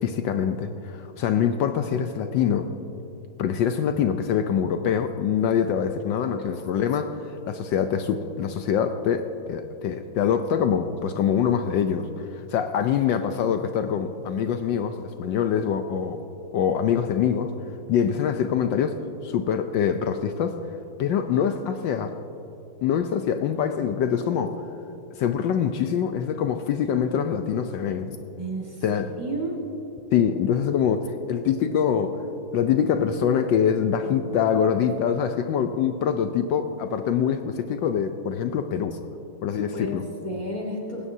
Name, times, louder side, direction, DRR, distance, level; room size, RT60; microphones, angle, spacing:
voice 1, 0.0-2.7 3.4-16.2 16.5-17.5 17.9-20.6 21.0-22.2 22.8-24.6 25.1-28.2 28.8-29.1 30.1-32.2 32.5-39.0 39.4-40.0, left 8 dB, 75° left, 7 dB, 1.2 m, -24 dB
voice 2, 28.4-29.6 39.5-41.1, right 1 dB, 20° right, -1 dB, 1.9 m, -32 dB
19.5 x 16.5 x 2.7 m, 2.8 s
omnidirectional pair, 2.2 m